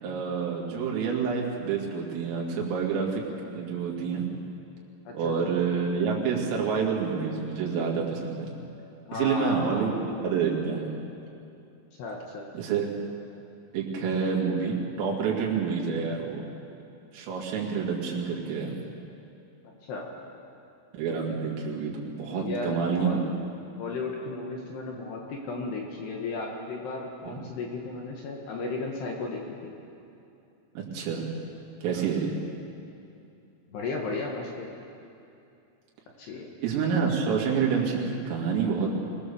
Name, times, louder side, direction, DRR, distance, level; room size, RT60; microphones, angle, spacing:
voice 1, 0.0-4.3 5.1-8.5 9.1-9.9 10.2-11.0 12.6-12.9 13.7-16.5 17.1-18.8 20.9-23.2 27.3-27.4 30.8-31.4 31.8-32.4 36.6-38.9, right 6 dB, 75° right, -2 dB, 5.2 m, -28 dB
voice 2, 5.1-5.5 9.1-10.0 12.0-12.4 19.9-20.1 22.3-23.3 23.8-29.7 31.9-32.1 33.7-34.7 36.2-36.5, left 3 dB, 65° left, 0 dB, 3.3 m, -35 dB
25.0 x 18.5 x 7.1 m, 2.7 s
omnidirectional pair, 6.0 m